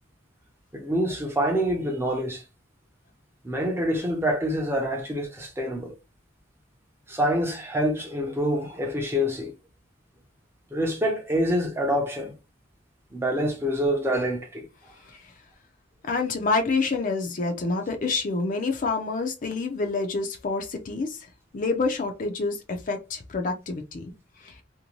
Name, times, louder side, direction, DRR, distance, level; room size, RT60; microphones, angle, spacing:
voice 1, 0.7-2.4 3.4-5.9 7.1-9.5 10.7-12.3 13.1-14.6, equal, 10° right, 0.6 m, -26 dB
voice 2, 16.1-21.3 21.5-24.1 24.4-24.6, left 3 dB, 40° left, 0.5 m, -27 dB
2.6 x 2.2 x 3.0 m
head